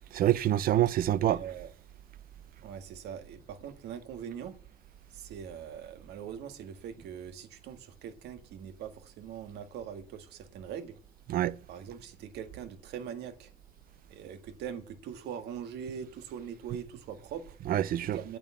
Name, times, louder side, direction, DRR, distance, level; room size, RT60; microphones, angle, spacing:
voice 1, 0.1-1.4 11.3-11.6 17.7-18.2, right 12 dB, 60° right, 0.6 m, -26 dB
voice 2, 1.2-1.7 2.6-4.5 5.1-11.0 11.7-13.5 14.1-17.6 18.1-18.4, right 8 dB, 80° right, 1.7 m, -42 dB
8.9 x 8.6 x 7.2 m
cardioid pair, 110°, 17 cm